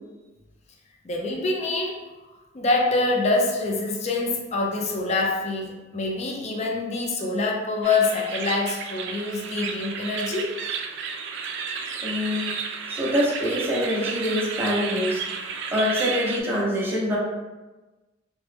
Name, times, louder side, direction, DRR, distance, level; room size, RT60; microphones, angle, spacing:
voice 1, 1.0-2.0 2.5-10.5, left 3 dB, 35° left, 0 dB, 0.4 m, -25 dB
sound 1, 7.8-16.4, right 5 dB, 65° right, 0.3 m, -32 dB
voice 2, 12.0-12.5 12.9-15.2 15.7-17.2, equal, 10° right, -6 dB, 0.7 m, -25 dB
2.9 x 2.1 x 3.2 m, 1.2 s
head